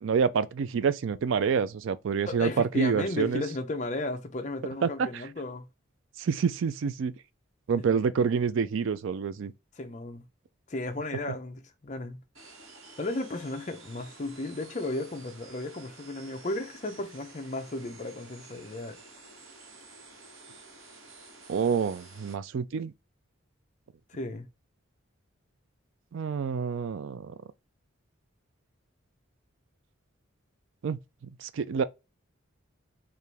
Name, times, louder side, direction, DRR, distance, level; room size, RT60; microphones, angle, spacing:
voice 1, 0.0-3.4 4.8-5.2 6.2-7.1 7.7-9.5 21.5-22.9 26.1-27.4 30.8-31.0 31.4-31.8, right 6 dB, 70° right, 0.4 m, -27 dB
voice 2, 2.3-5.7 7.7-7.8 9.8-10.2 10.7-12.2 13.0-19.0 24.1-24.5, left 2 dB, 35° left, 0.6 m, -34 dB
sound 1, 12.3-22.3, right 3 dB, 85° right, 1.5 m, -51 dB
4.6 x 2.5 x 3.4 m
head